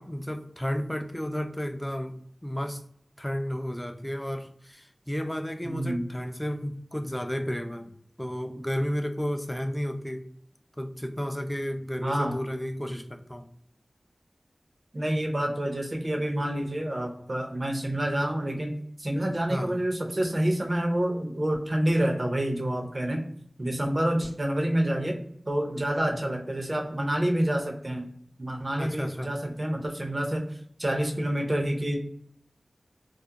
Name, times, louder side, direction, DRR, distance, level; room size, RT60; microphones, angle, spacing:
voice 1, 0.0-2.2 2.4-2.8 3.2-7.9 8.2-10.2 10.8-13.5 19.5-19.8 26.1-26.2 28.8-29.3, equal, 10° left, 7 dB, 0.3 m, -32 dB
voice 2, 5.6-6.1 12.0-12.4 14.9-18.7 19.0-23.2 23.6-25.2 25.5-28.1 28.4-30.4 30.8-32.0, right 1 dB, 40° right, 2 dB, 0.6 m, -28 dB
2.4 x 2.1 x 2.7 m, 0.66 s
wide cardioid pair, 50°, 0 cm